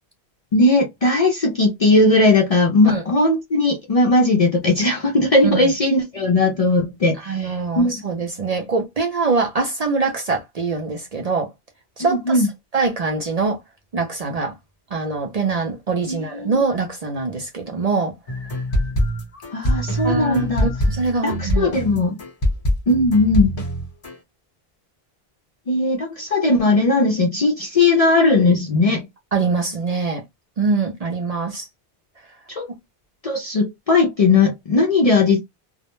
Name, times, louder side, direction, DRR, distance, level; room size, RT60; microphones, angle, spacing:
voice 1, 0.5-8.0 12.0-12.5 16.1-16.5 19.5-20.7 21.2-22.1 22.9-23.5 25.7-29.1 32.5-32.7 33.2-35.4, left 2 dB, 55° left, 0.4 m, -18 dB
voice 2, 7.2-11.5 12.0-12.4 12.7-13.6 13.9-14.5 14.9-18.2 20.0-21.7 29.3-30.2 30.6-31.7, right 4 dB, 50° right, 0.5 m, -23 dB
sound 1, 18.3-24.2, equal, 35° left, 1.0 m, -23 dB
2.1 x 2.1 x 2.9 m
omnidirectional pair, 1.1 m